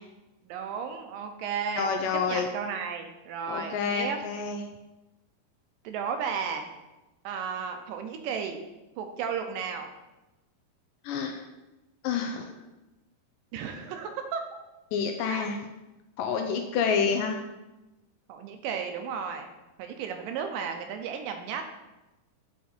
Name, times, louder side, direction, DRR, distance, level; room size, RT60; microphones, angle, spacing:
voice 1, 0.5-1.9 2.3-4.2 5.8-6.7 7.2-8.6 9.0-9.9 13.5-14.4 15.3-15.5 18.3-19.5 19.8-21.6, right 6 dB, 80° right, 6 dB, 2.2 m, -34 dB
voice 2, 1.8-2.5 3.5-4.6 11.0-11.4 12.0-12.5 14.9-15.6 16.2-17.4, left 6 dB, 80° left, 5 dB, 2.0 m, -28 dB
7.0 x 5.0 x 4.3 m, 1.0 s
omnidirectional pair, 4.2 m